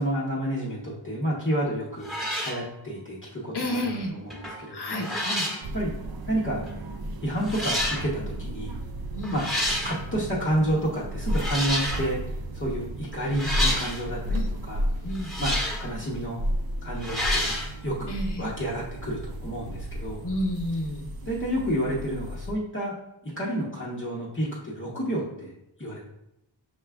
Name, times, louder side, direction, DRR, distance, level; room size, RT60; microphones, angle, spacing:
voice 1, 0.0-5.1 5.7-5.9 6.3-6.7 7.2-8.8 9.3-9.5 9.8-14.9 15.4-16.4 16.8-17.6 17.8-20.2 21.2-22.9 23.2-26.0, right 1 dB, 25° left, -6 dB, 0.8 m, -30 dB
sound 1, 1.5-1.7 2.0-2.6 4.3-4.6 4.9-5.6 6.6-6.7 7.4-8.0 9.2-10.0 11.3-12.1 13.3-14.0 15.1-15.9 17.0-17.7, left 1 dB, ahead, 1.2 m, -29 dB
voice 2, 3.5-4.1 4.7-5.5 9.1-9.3 14.3-14.5 15.0-15.3 18.1-18.4 20.2-21.1, left 1 dB, 55° left, 2 dB, 0.9 m, -30 dB
sound 2, 5.6-22.5, equal, 50° right, 0.5 m, -33 dB
5.8 x 2.4 x 3.4 m, 0.84 s
wide cardioid pair, 60°, 48 cm